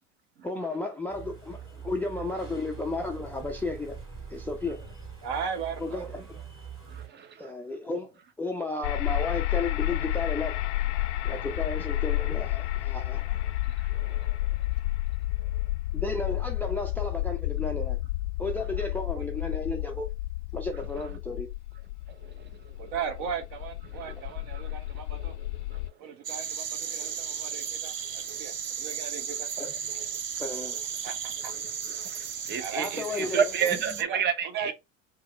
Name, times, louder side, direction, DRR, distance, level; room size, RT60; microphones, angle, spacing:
voice 1, 0.4-4.0 4.3-4.8 5.8-6.4 7.4-8.1 8.4-10.6 11.2-13.3 15.9-18.0 18.4-20.1 20.5-21.5 29.6-29.7 30.4-30.8 32.8-33.4 33.9-34.0, left 2 dB, 5° left, 0.4 m, -33 dB
sound 1, 1.1-7.1, right 6 dB, 10° right, 2.1 m, -43 dB
voice 2, 5.2-6.5 19.1-19.2 21.1-21.2 22.8-25.3 26.0-29.5 30.8-31.5 32.6-34.7, right 7 dB, 50° right, 1.0 m, -38 dB
voice 3, 6.9-7.5 11.2-11.4 13.8-14.3 25.7-25.8 28.3-28.4 32.0-32.2 32.5-34.7, right 7 dB, 25° right, 0.7 m, -30 dB
sound 2, 8.8-25.9, left 16 dB, 60° left, 0.5 m, -31 dB
sound 3, 26.2-34.0, right 7 dB, 80° right, 0.6 m, -35 dB
4.7 x 2.0 x 3.2 m
figure-of-eight pair, 75°, 38 cm